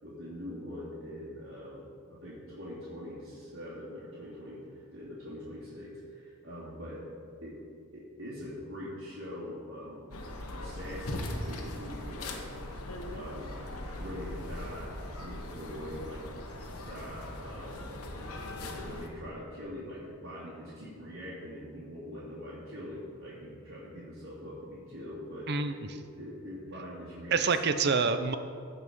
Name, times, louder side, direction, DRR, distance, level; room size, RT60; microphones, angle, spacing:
voice 1, 0.0-7.0 7.4-7.6 7.9-10.1 10.5-12.4 13.1-13.5 14.0-17.8 18.6-27.4, equal, 65° right, -11 dB, 3.0 m, -43 dB
sound 1, 10.1-19.1, left 1 dB, 85° left, 1.2 m, -40 dB
voice 2, 25.5-26.0 27.3-28.4, right 4 dB, 50° right, 10 dB, 0.6 m, -27 dB
16.0 x 5.5 x 5.4 m, 2.3 s
head